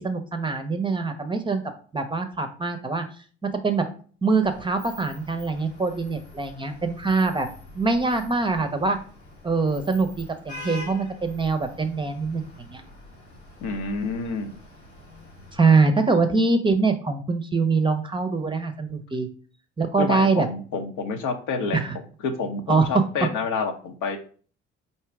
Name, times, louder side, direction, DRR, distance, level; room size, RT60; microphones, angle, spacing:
voice 1, 0.0-1.6 1.9-3.0 3.4-3.9 4.2-7.5 7.7-9.0 9.4-12.8 15.5-19.3 19.8-20.5 21.7-22.0 22.7-22.9, right 4 dB, 15° right, 7 dB, 0.7 m, -23 dB
Vehicle horn car horn honking / Traffic noise roadway noise, 4.4-15.6, left 2 dB, 90° left, 1.3 m, -45 dB
voice 2, 13.6-14.6 20.0-21.8 22.2-24.2, left 4 dB, 65° left, 5 dB, 0.8 m, -28 dB
4.6 x 2.8 x 3.4 m, 0.41 s
hypercardioid pair, 55°, 32 cm